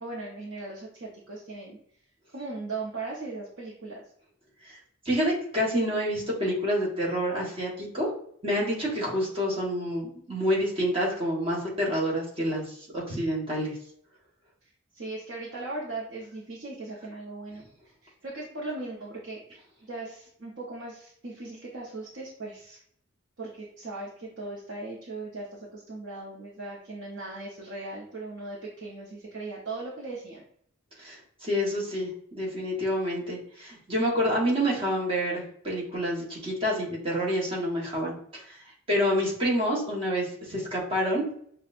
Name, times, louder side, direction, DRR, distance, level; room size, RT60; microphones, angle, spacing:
voice 1, 0.0-1.8 2.3-4.0 14.6-17.7 18.0-22.8 23.4-30.4, right 2 dB, 60° right, -5 dB, 0.8 m, -38 dB
voice 2, 5.0-8.1 8.4-13.7 31.0-38.6 38.9-41.2, equal, 25° right, -4 dB, 1.2 m, -28 dB
6.0 x 2.3 x 2.5 m, 0.65 s
head